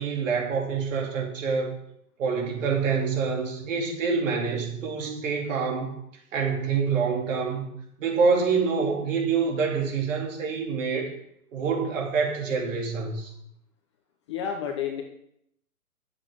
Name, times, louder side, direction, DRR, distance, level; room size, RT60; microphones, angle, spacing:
voice 1, 0.0-1.8 2.2-5.9 6.3-7.7 8.0-11.1 11.5-13.3, right 5 dB, 55° right, 0 dB, 3.1 m, -26 dB
voice 2, 14.3-15.0, left 8 dB, 20° left, 3 dB, 0.5 m, -30 dB
10.0 x 7.3 x 4.9 m, 0.74 s
hypercardioid pair, 150°, 46 cm